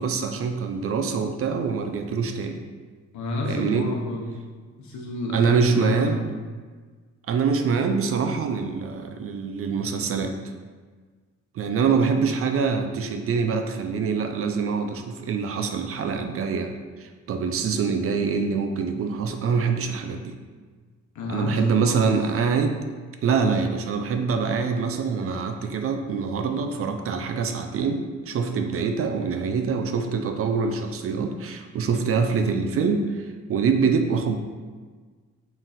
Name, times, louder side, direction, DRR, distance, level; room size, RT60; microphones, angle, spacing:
voice 1, 0.0-2.6 3.4-3.9 5.3-6.2 7.3-10.3 11.5-16.7 17.0-20.4 21.3-22.7 23.2-34.4, right 5 dB, 50° right, 6 dB, 0.4 m, -25 dB
voice 2, 3.1-4.3 4.8-6.2 11.8-12.1 21.1-22.1, left 2 dB, 70° left, -1 dB, 0.9 m, -30 dB
3.9 x 2.4 x 4.0 m, 1.4 s
cardioid pair, 90°, 30 cm